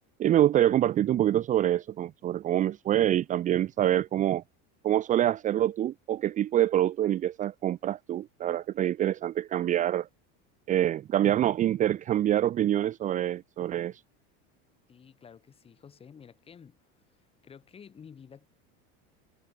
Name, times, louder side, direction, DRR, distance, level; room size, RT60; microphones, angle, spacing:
voice 1, 0.2-4.4 4.8-10.1 10.7-14.0, right 12 dB, 25° right, 1.0 m, -26 dB
voice 2, 14.9-16.8 17.4-18.5, left 7 dB, 20° left, 7.0 m, -51 dB
cardioid pair, 175°, 31 cm